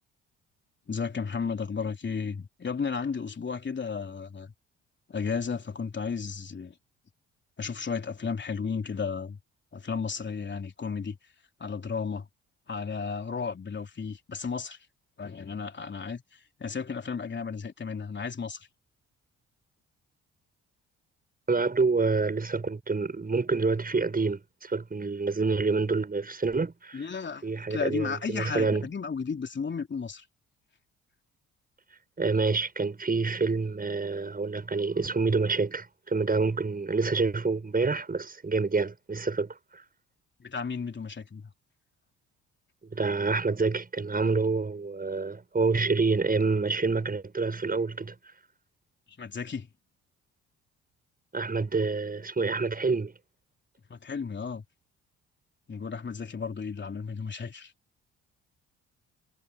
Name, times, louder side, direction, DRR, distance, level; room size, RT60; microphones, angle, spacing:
voice 1, 0.9-4.5 5.1-6.8 7.6-9.4 9.7-11.2 11.6-12.3 12.7-14.8 15.2-16.2 16.6-18.7 26.9-27.4 27.7-30.2 40.4-41.4 49.2-49.7 53.9-54.6 55.7-57.7, left 5 dB, 30° left, 3.7 m, -33 dB
voice 2, 21.5-27.0 27.4-28.9 32.2-39.8 42.9-48.1 51.3-53.1, right 4 dB, 25° right, 7.4 m, -27 dB
figure-of-eight pair, 45°, 35 cm